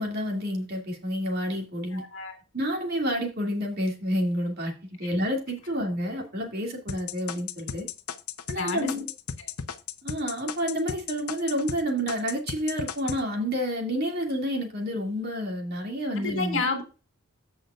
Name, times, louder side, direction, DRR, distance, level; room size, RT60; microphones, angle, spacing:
voice 1, 0.0-2.0 2.5-7.9 8.5-9.1 10.0-16.6, equal, 45° right, 1 dB, 2.5 m, -29 dB
voice 2, 1.9-2.4 8.5-8.9 9.4-9.5 16.1-16.8, left 3 dB, 55° left, 3 dB, 2.2 m, -30 dB
sound 1, 6.9-11.8 12.1-13.2, left 7 dB, 90° left, 0.9 m, -34 dB
15.5 x 5.6 x 2.5 m, 0.33 s
head